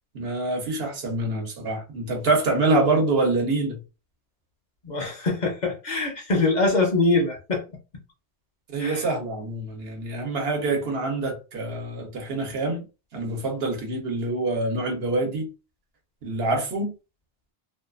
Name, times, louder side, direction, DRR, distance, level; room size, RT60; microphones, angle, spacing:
voice 1, 0.1-3.8 8.7-12.9 13.1-15.5 16.2-16.9, right 2 dB, 70° right, 1.0 m, -26 dB
voice 2, 4.8-7.6 8.8-9.0, left 3 dB, 50° left, 0.7 m, -23 dB
2.5 x 2.3 x 2.4 m
omnidirectional pair, 1.1 m